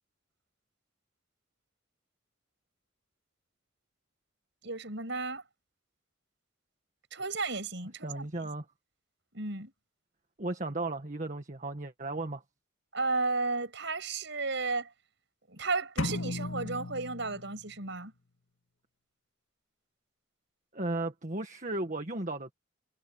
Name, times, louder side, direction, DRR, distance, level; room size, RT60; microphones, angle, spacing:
voice 1, 4.6-5.4 7.1-8.5 9.3-9.7 12.9-14.9 15.5-18.1, right 3 dB, 60° right, 7.5 m, -33 dB
voice 2, 8.0-8.7 10.4-12.4 20.7-22.5, right 2 dB, 40° right, 1.7 m, -35 dB
sound 1, 16.0-17.9, left 2 dB, 75° left, 2.2 m, -36 dB
head